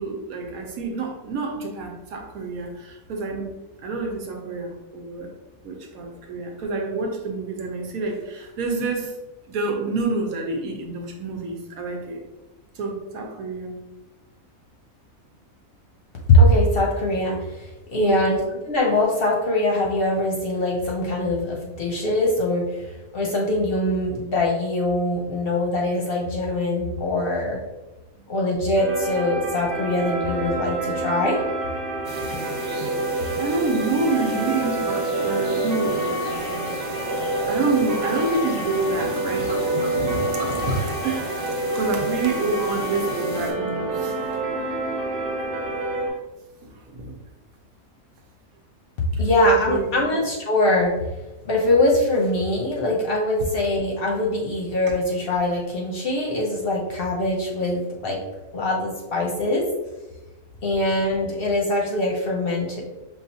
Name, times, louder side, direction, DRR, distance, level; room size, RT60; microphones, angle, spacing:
voice 1, 0.0-3.5 3.8-5.3 5.6-9.1 9.5-12.2 12.7-13.7 18.0-18.4 33.4-36.7 37.5-39.6 39.9-44.4 46.9-47.1 49.6-50.0, right 3 dB, 85° right, 1 dB, 1.2 m, -28 dB
voice 2, 16.3-18.4 18.7-22.9 23.1-27.6 28.3-31.4 49.2-50.9 51.4-58.2 58.5-59.6 60.6-62.8, left 1 dB, 55° left, -1 dB, 0.7 m, -22 dB
sound 1, 28.8-46.1, right 2 dB, 45° right, 1.0 m, -27 dB
sound 2, 32.0-43.5, right 1 dB, 25° right, 1.3 m, -34 dB
5.5 x 2.4 x 2.7 m, 1.0 s
omnidirectional pair, 1.5 m